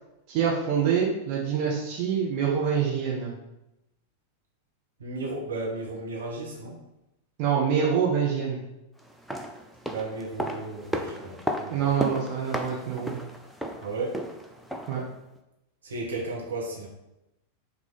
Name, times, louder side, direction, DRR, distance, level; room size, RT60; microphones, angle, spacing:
voice 1, 0.3-3.3 7.4-8.6 11.7-13.1 14.9-15.0, right 7 dB, 45° right, -4 dB, 1.5 m, -25 dB
voice 2, 5.0-6.8 9.9-11.8 13.8-14.2 15.8-16.9, right 2 dB, 70° right, -3 dB, 2.0 m, -34 dB
sound 1, 9.1-15.1 15.4-15.5, equal, ahead, 0.7 m, -34 dB
6.4 x 3.8 x 5.6 m, 0.91 s
figure-of-eight pair, 90°, 0 cm